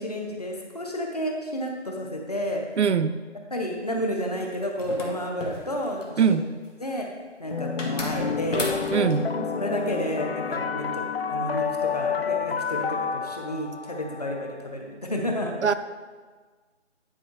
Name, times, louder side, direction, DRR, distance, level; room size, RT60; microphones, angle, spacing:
voice 1, 0.0-2.6 3.5-6.4 6.8-7.1 7.4-8.7 9.3-11.6 11.9-15.7, equal, 35° left, 1 dB, 0.9 m, -31 dB
voice 2, 2.8-3.1 6.2-6.5 8.9-9.3 15.6-15.7, right 6 dB, 70° right, 11 dB, 0.5 m, -21 dB
sound 1, 4.8-6.2 7.8-9.2, left 2 dB, 90° left, 1.9 m, -34 dB
sound 2, 7.5-14.5, left 6 dB, 55° left, 0.4 m, -29 dB
10.0 x 4.7 x 4.6 m, 1.4 s
figure-of-eight pair, 170°, 36 cm